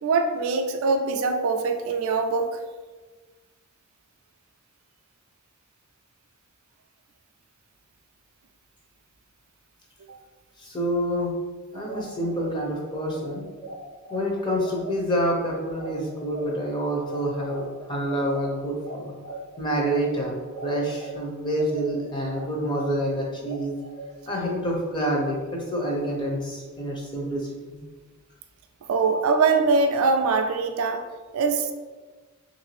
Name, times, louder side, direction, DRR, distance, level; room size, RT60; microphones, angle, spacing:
voice 1, 0.0-2.5 28.9-31.0 31.3-31.7, right 4 dB, 70° right, 6 dB, 0.3 m, -22 dB
voice 2, 10.6-11.3 11.7-13.4 14.1-19.1 19.6-20.4 20.6-23.7 24.3-27.8, equal, 20° left, -2 dB, 0.6 m, -27 dB
sound 1, 11.7-21.1 21.5-24.6, right 3 dB, 45° left, 1.1 m, -40 dB
3.2 x 2.6 x 3.1 m, 1.3 s
head